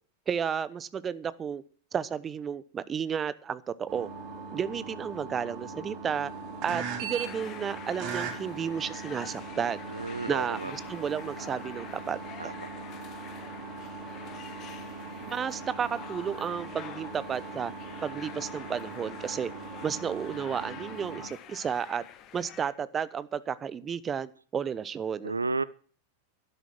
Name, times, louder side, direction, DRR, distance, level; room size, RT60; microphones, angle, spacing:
voice 1, 0.3-1.6 1.9-4.1 4.5-6.3 6.6-9.8 10.3-12.5 15.3-17.7 18.0-19.5 19.8-22.0 22.3-25.4, right 7 dB, 20° right, 0.9 m, -32 dB
sound 1, 3.9-21.3, right 4 dB, 40° right, 3.3 m, -40 dB
sound 2, 7.1-22.7, left 11 dB, 35° left, 1.4 m, -48 dB
voice 2, 9.9-10.7 12.4-12.7 25.2-25.6, right 3 dB, 80° right, 0.5 m, -32 dB
12.5 x 11.0 x 6.1 m
figure-of-eight pair, 90°, 0 cm